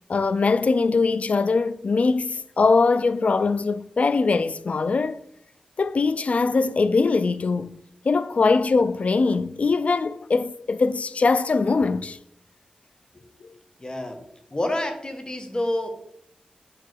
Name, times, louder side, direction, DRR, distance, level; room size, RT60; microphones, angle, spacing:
voice 1, 0.1-5.2 5.8-7.8 8.0-12.2 13.4-13.5, left 4 dB, 60° left, 0.4 m, -22 dB
voice 2, 13.8-14.2 14.5-15.9, left 1 dB, 35° left, 1.4 m, -28 dB
5.9 x 4.8 x 4.6 m
cardioid pair, 45°, 3 cm